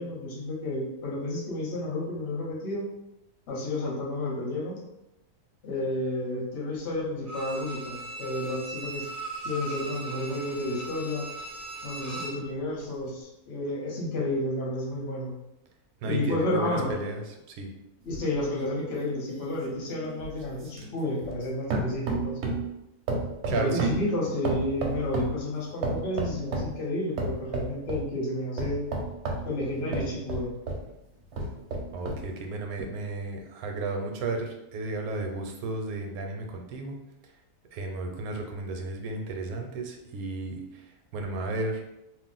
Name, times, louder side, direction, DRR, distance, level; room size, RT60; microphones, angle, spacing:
voice 1, 0.0-2.9 3.5-4.8 5.6-9.1 9.4-11.3 11.8-15.3 16.0-16.9 18.0-22.4 23.5-28.8 29.4-30.5, left 1 dB, 50° left, -3 dB, 0.9 m, -31 dB
Bowed string instrument, 7.3-12.5 12.8-12.9, right 2 dB, 35° right, 0.5 m, -38 dB
voice 2, 16.0-17.2 17.5-17.7 23.5-24.0 31.9-36.9 37.7-40.6 41.1-41.8, right 2 dB, 80° right, 3 dB, 1.0 m, -33 dB
sound 1, 18.1-21.4 21.7-22.7 23.1-25.4 25.8-26.8 27.2-28.1 28.6-30.9 31.3-32.3 32.8-32.9, right 2 dB, 65° right, 0.7 m, -32 dB
2.6 x 2.0 x 3.8 m, 0.91 s
omnidirectional pair, 1.5 m